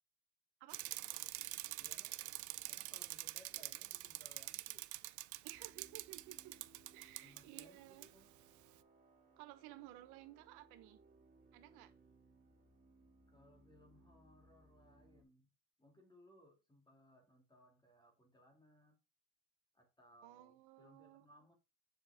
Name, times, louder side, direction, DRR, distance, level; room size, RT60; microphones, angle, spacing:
Bicycle, 0.7-7.6 8.0-8.1, right 17 dB, 50° right, 0.5 m, -46 dB
voice 1, 1.8-2.2 2.7-4.9 7.2-8.3 13.3-15.5 15.8-19.0 19.7-21.5, left 1 dB, 10° left, 2.6 m, -66 dB
voice 2, 5.4-6.5 6.9-8.1 9.4-11.0 11.5-11.9 20.2-21.2, right 15 dB, 85° right, 1.1 m, -56 dB
sound 1, 5.5-15.2, right 3 dB, 20° right, 3.1 m, -67 dB
7.5 x 6.0 x 3.5 m
cardioid pair, 130°, 38 cm